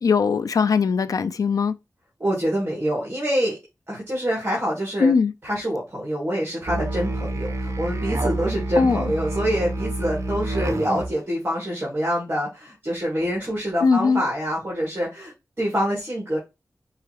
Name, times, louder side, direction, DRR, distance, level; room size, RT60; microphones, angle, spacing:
voice 1, 0.0-1.7 5.0-5.3 8.8-9.1 13.8-14.2, left 5 dB, 80° left, 0.4 m, -20 dB
voice 2, 2.2-3.6 3.9-5.1 5.4-16.4, equal, 35° right, 2.3 m, -26 dB
Musical instrument, 6.7-11.2, right 2 dB, 60° right, 0.8 m, -28 dB
5.6 x 2.9 x 2.9 m
wide cardioid pair, 85°, 6 cm